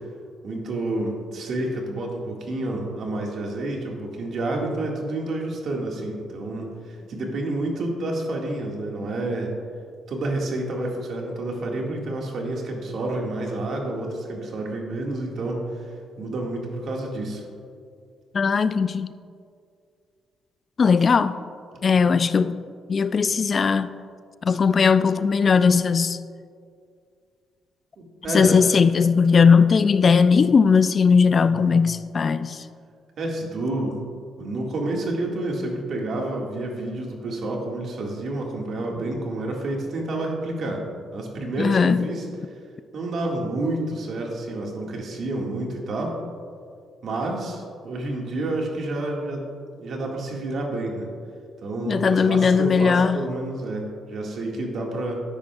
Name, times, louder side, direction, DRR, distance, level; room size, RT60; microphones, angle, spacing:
voice 1, 0.4-9.5 10.1-17.5 28.0-28.6 31.3-31.7 33.2-34.0 34.4-40.9 41.1-42.3 42.9-46.2 47.0-49.5 49.8-51.1 51.6-55.2, right 2 dB, 60° right, 1.9 m, -29 dB
voice 2, 18.3-19.1 20.8-21.3 21.8-22.5 22.9-23.9 24.4-26.2 28.3-32.6 41.6-42.1 51.9-53.2, left 5 dB, 40° left, 0.3 m, -18 dB
13.0 x 10.0 x 2.4 m
cardioid pair, 90°, 0 cm